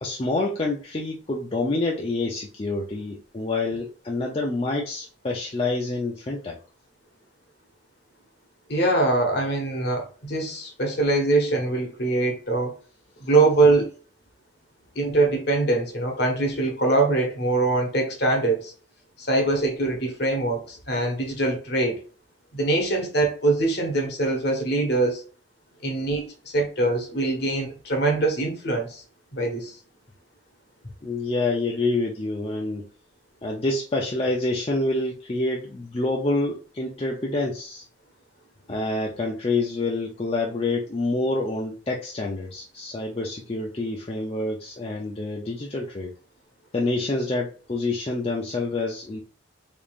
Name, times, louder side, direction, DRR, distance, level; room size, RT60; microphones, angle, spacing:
voice 1, 0.0-6.6 31.0-32.8 33.4-37.8 38.7-46.1 46.7-49.2, left 2 dB, 30° left, 0.5 m, -27 dB
voice 2, 8.7-12.7 13.2-13.9 14.9-18.7 19.2-22.0 22.5-25.2 25.8-29.0 29.3-29.7, right 2 dB, 55° left, 1.2 m, -23 dB
3.7 x 3.6 x 2.4 m
head